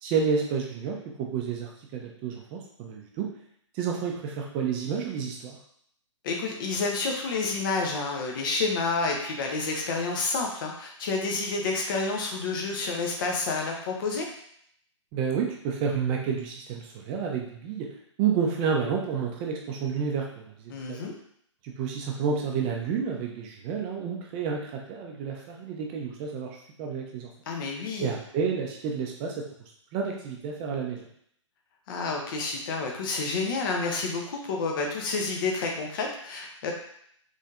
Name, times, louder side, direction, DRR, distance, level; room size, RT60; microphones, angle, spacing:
voice 1, 0.0-3.3 3.7-5.6 15.1-17.9 18.2-21.1 21.6-27.3 28.0-29.5 29.9-31.1, right 6 dB, 25° right, 0 dB, 0.5 m, -30 dB
voice 2, 6.2-14.3 20.7-21.1 27.5-28.1 31.9-36.7, left 3 dB, 45° left, 0 dB, 0.7 m, -29 dB
4.1 x 3.2 x 2.5 m, 0.68 s
figure-of-eight pair, 125°, 16 cm